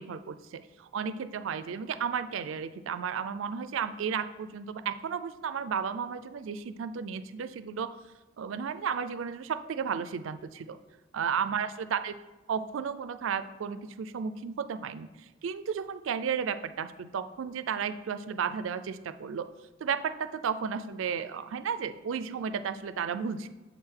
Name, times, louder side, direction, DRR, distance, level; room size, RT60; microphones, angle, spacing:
voice 1, 0.0-8.0 8.4-10.8 11.1-12.1 12.5-15.1 15.4-19.5 19.8-23.5, right 7 dB, 75° right, 12 dB, 0.4 m, -33 dB
6.9 x 3.7 x 4.5 m, 1.1 s
head